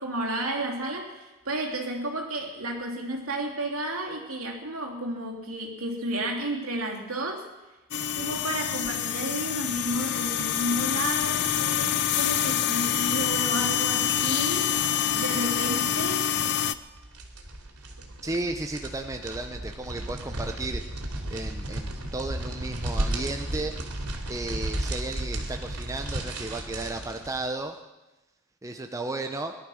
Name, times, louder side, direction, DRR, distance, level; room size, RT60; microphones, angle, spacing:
voice 1, 0.0-7.5 8.2-14.8 15.1-16.3, right 1 dB, 65° right, 1 dB, 3.0 m, -32 dB
sound 1, 7.9-16.7, left 10 dB, 50° left, 0.5 m, -26 dB
sound 2, 16.7-27.4, right 1 dB, 85° right, 2.9 m, -34 dB
voice 2, 18.2-20.8 21.3-23.7 24.3-27.8 28.6-29.6, right 2 dB, 15° right, 4 dB, 0.7 m, -34 dB
19.0 x 12.0 x 6.4 m, 1.1 s
head